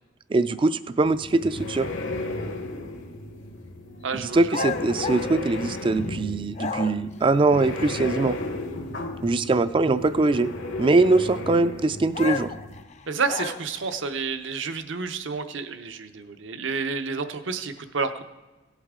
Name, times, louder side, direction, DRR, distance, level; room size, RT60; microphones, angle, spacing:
voice 1, 0.3-1.9 4.1-8.4 9.2-10.5 10.8-12.5, right 3 dB, 25° right, 13 dB, 0.3 m, -22 dB
sound 1, 1.0-12.8, left 2 dB, 75° left, 1.2 m, -34 dB
voice 2, 4.0-4.6 13.1-18.2, right 4 dB, 75° right, 9 dB, 0.7 m, -30 dB
sound 2, 4.5-6.1 6.5-7.2 12.1-13.9, left 4 dB, 35° left, 0.5 m, -32 dB
17.0 x 8.2 x 3.7 m, 1.2 s
head